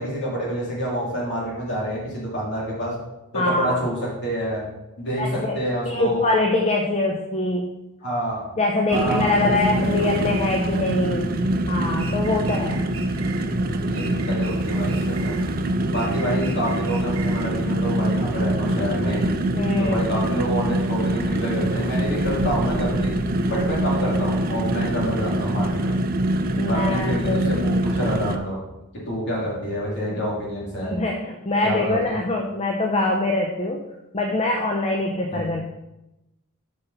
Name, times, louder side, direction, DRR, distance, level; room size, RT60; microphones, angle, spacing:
voice 1, 0.0-2.9 3.3-4.6 5.0-6.3 8.0-8.5 8.9-10.1 10.8-11.0 12.2-12.5 13.8-15.3 15.9-19.2 19.8-23.1 23.5-26.0 26.6-28.6 29.1-30.9 31.6-32.2 35.3-35.4, equal, 55° left, -4 dB, 2.8 m, -28 dB
voice 2, 3.3-3.8 5.2-5.6 5.9-7.7 8.6-11.3 11.7-12.8 19.6-20.0 26.6-27.5 30.1-30.2 30.8-33.9 34.1-35.6, left 2 dB, 30° left, 1 dB, 0.6 m, -23 dB
sound 1, 8.9-28.4, right 1 dB, 45° right, 0.5 m, -24 dB
sound 2, 12.0-13.5 13.9-15.5 15.9-17.5, right 6 dB, 65° right, 1.0 m, -40 dB
8.1 x 5.7 x 3.9 m, 0.96 s
head